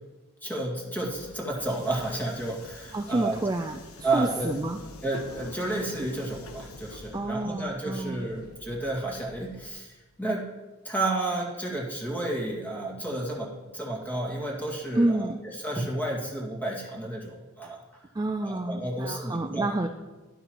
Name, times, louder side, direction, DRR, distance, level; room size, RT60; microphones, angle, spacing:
voice 1, 0.4-3.4 4.0-4.5 5.0-10.5 10.8-15.3 15.6-18.0 18.4-19.7, right 2 dB, 10° left, -2 dB, 1.9 m, -31 dB
Subway metro underground, 0.9-9.7, left 2 dB, 75° left, 1.1 m, -46 dB
voice 2, 2.9-4.8 7.1-8.3 14.9-15.4 18.1-19.9, right 2 dB, 15° right, 4 dB, 0.3 m, -29 dB
12.0 x 12.0 x 3.0 m, 1.2 s
head